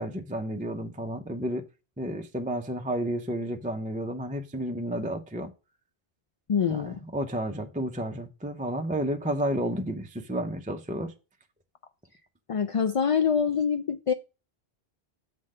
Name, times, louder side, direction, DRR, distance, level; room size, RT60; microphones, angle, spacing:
voice 1, 0.0-1.7 2.0-5.5 6.7-11.1, right 1 dB, 10° right, 0.5 m, -31 dB
voice 2, 6.5-7.0 12.5-14.1, left 7 dB, 55° left, 0.4 m, -25 dB
7.4 x 3.9 x 6.3 m
omnidirectional pair, 1.0 m